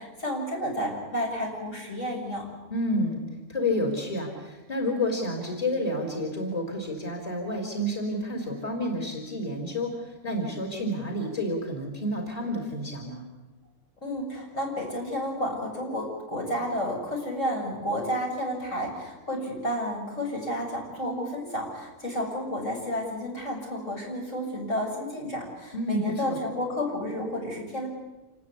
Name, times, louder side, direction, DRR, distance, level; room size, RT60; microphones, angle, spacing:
voice 1, 0.0-2.4 14.0-27.9, equal, 75° left, -1 dB, 7.4 m, -31 dB
voice 2, 2.7-3.2 3.5-13.3 25.7-26.0 26.3-26.4, left 1 dB, 30° left, 1 dB, 4.1 m, -30 dB
27.5 x 20.0 x 8.4 m, 1.1 s
omnidirectional pair, 1.3 m